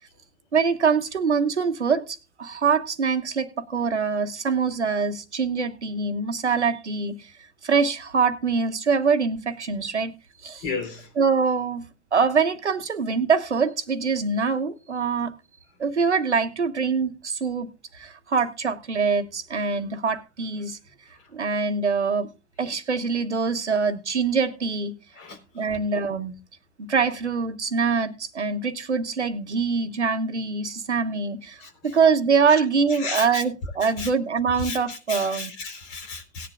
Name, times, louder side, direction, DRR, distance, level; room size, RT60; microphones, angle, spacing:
voice 1, 0.5-7.3 7.6-10.1 10.4-10.7 11.2-11.8 12.1-15.3 15.8-20.8 21.3-22.3 22.6-24.9 25.5-26.3 26.8-35.5, right 5 dB, 85° right, 1.2 m, -24 dB
voice 2, 10.6-11.1 25.2-25.4 31.6-31.7 33.0-33.4 34.0-34.1 34.6-36.5, left 4 dB, 50° left, 4.3 m, -33 dB
18.0 x 10.0 x 2.5 m
figure-of-eight pair, 90°, 34 cm